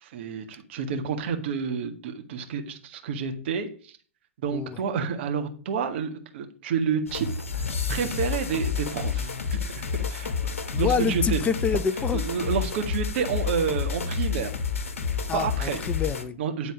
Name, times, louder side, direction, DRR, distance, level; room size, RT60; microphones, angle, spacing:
voice 1, 0.0-4.0 4.4-7.3 7.5-10.3 10.8-11.4 12.1-14.5 15.3-15.8 16.4-16.7, right 6 dB, 55° right, 5 dB, 1.6 m, -29 dB
sound 1, 7.1-16.2, left 6 dB, 75° left, 1.3 m, -29 dB
voice 2, 10.7-12.2 15.3-16.4, left 6 dB, 20° left, 13 dB, 0.7 m, -27 dB
9.8 x 4.1 x 7.4 m, 0.42 s
hypercardioid pair, 115°, 7 cm